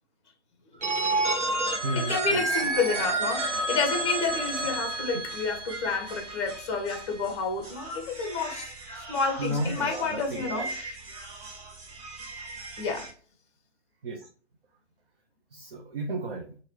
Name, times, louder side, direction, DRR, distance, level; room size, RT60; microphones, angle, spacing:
voice 1, 0.7-1.0 1.8-2.4 9.4-10.7 14.0-14.3 15.5-16.6, right 1 dB, 55° right, 0.7 m, -33 dB
Telephone, 0.8-6.6, right 2 dB, 90° right, 0.8 m, -29 dB
sound 1, 0.9-13.1, right 2 dB, 35° right, 1.1 m, -42 dB
voice 2, 2.0-11.0 12.8-13.1, left 4 dB, 25° left, 0.7 m, -30 dB
2.8 x 2.6 x 3.2 m
figure-of-eight pair, 130°, 35 cm